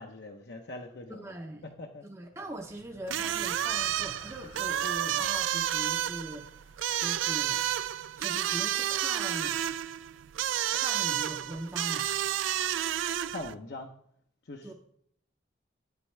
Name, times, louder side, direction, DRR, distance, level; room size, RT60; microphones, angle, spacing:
voice 1, 0.0-1.4 1.6-2.0 13.3-13.9 14.5-14.7, left 2 dB, 60° left, 2 dB, 0.7 m, -42 dB
voice 2, 1.1-1.7 2.0-6.5 7.0-7.7 8.1-9.6 10.7-12.1 14.6-14.7, right 1 dB, 15° right, 3 dB, 0.6 m, -41 dB
sound 1, 2.2-7.9, left 2 dB, 75° left, 1.4 m, -54 dB
sound 2, 3.1-13.5, right 11 dB, 90° right, 0.3 m, -30 dB
9.7 x 8.1 x 3.2 m, 0.66 s
head